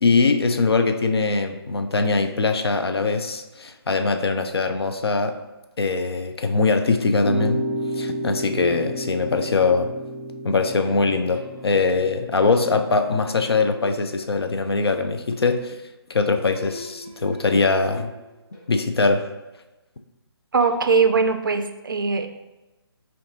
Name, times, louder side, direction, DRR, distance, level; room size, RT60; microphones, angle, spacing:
voice 1, 0.0-5.3 5.8-7.6 7.9-9.9 10.4-15.8 16.1-18.1 18.7-19.3, left 3 dB, 70° left, 7 dB, 0.4 m, -22 dB
sound 1, 7.2-13.6, equal, 85° left, 1.1 m, -32 dB
sound 2, 10.8-12.1 12.5-13.1 13.4-14.7 16.5-18.9 20.6-21.3, left 1 dB, 10° left, 0.6 m, -44 dB
voice 2, 20.5-22.3, right 4 dB, 55° right, 7 dB, 0.4 m, -20 dB
5.2 x 2.3 x 2.7 m, 1.1 s
figure-of-eight pair, 145°, 14 cm